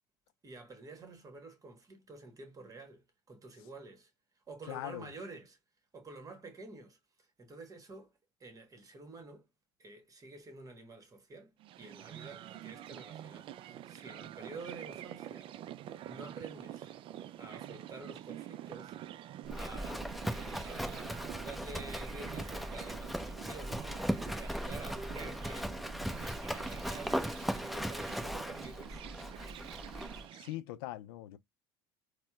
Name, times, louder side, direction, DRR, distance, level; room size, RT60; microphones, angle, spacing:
voice 1, 0.4-4.1 4.5-5.6 5.9-7.0 7.4-8.1 8.4-9.5 9.8-15.5 16.1-16.9 17.4-19.0 19.5-23.9 24.3-25.7 26.4-29.0, right 3 dB, 30° right, 1.3 m, -49 dB
voice 2, 4.7-5.1 30.3-31.4, left 15 dB, 70° left, 0.4 m, -41 dB
sound 1, 11.6-30.6, right 12 dB, 45° right, 0.4 m, -47 dB
Livestock farm animals working animals, 19.5-30.3, equal, ahead, 0.7 m, -38 dB
4.2 x 2.1 x 2.2 m
hypercardioid pair, 70°, 13 cm